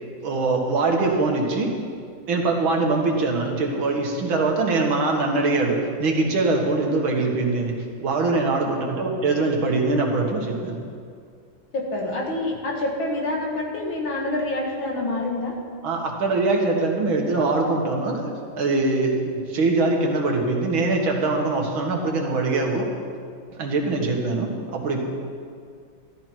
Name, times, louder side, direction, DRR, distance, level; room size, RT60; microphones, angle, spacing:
voice 1, 0.2-1.7 2.3-7.7 8.0-10.8 15.8-18.3 18.6-22.9 23.6-25.0, right 3 dB, 90° right, 1 dB, 2.4 m, -23 dB
voice 2, 11.7-15.6, left 2 dB, 80° left, -1 dB, 2.6 m, -27 dB
14.0 x 12.5 x 4.5 m, 2.2 s
omnidirectional pair, 2.2 m